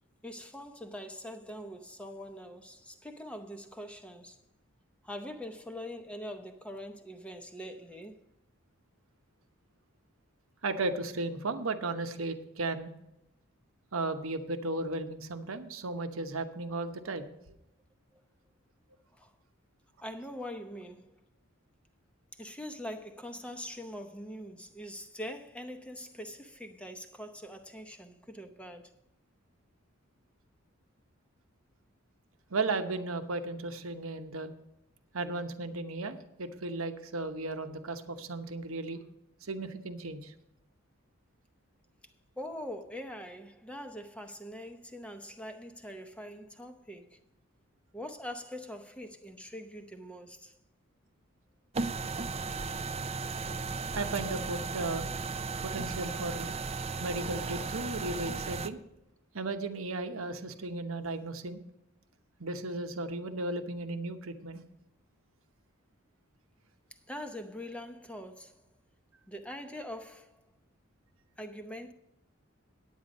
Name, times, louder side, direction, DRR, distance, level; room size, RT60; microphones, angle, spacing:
voice 1, 0.2-4.4 5.0-8.2 18.1-18.2 19.1-19.3 20.0-21.1 22.3-28.9 42.4-47.2 47.9-50.6 67.1-68.6 69.3-70.5 71.4-71.9, equal, 5° left, 0.7 m, -43 dB
voice 2, 10.6-12.9 13.9-17.3 32.5-34.5 35.1-39.0 39.4-40.3 53.9-55.1 55.6-56.5 57.0-58.8 59.3-61.6 62.4-64.6, right 2 dB, 80° right, 1.0 m, -35 dB
sound 1, 51.7-58.7, right 4 dB, 30° right, 0.5 m, -35 dB
9.4 x 9.2 x 5.2 m
head